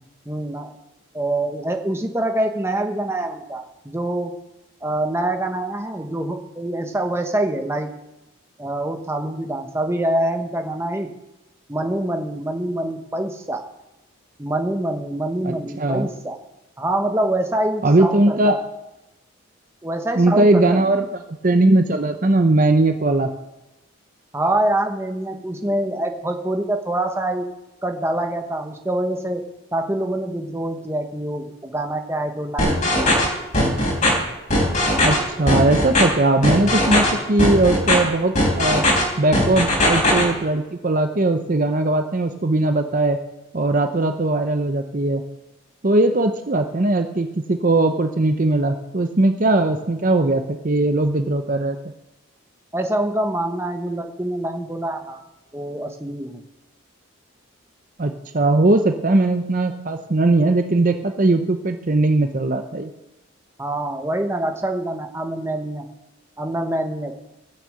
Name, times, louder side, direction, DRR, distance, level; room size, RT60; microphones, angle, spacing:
voice 1, 0.3-0.7 1.1-4.3 4.8-7.9 8.6-11.1 11.7-13.7 14.4-16.4 16.8-18.6 19.8-20.8 24.3-27.5 27.8-29.4 29.7-33.3 37.0-37.2 52.7-55.2 55.5-56.4 63.6-65.8 66.4-67.1, right 1 dB, 10° right, 4 dB, 1.0 m, -25 dB
voice 2, 15.4-16.1 17.8-18.6 20.2-21.1 21.4-23.3 35.0-38.9 39.2-43.2 43.5-45.2 45.8-51.8 58.0-62.9, right 2 dB, 40° right, 6 dB, 0.7 m, -19 dB
sound 1, 32.6-33.3 33.5-34.1 34.5-35.2 35.5-36.0 36.4-37.1 37.4-38.0 38.4-39.0 39.3-40.2, left 1 dB, 35° left, 4.2 m, -18 dB
16.0 x 6.7 x 7.8 m, 1.0 s
head